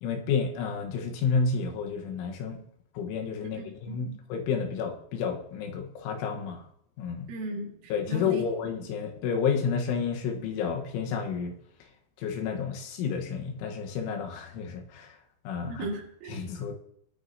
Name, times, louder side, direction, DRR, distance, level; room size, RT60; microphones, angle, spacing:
voice 1, 0.0-2.6 3.0-6.6 7.0-7.3 7.9-11.5 12.2-15.1 15.5-15.9 16.3-16.7, left 6 dB, 85° left, 3 dB, 3.8 m, -30 dB
voice 2, 3.4-4.2 7.3-8.4 15.7-16.4, right 2 dB, 90° right, -2 dB, 4.5 m, -37 dB
19.0 x 9.4 x 2.8 m, 0.71 s
omnidirectional pair, 5.4 m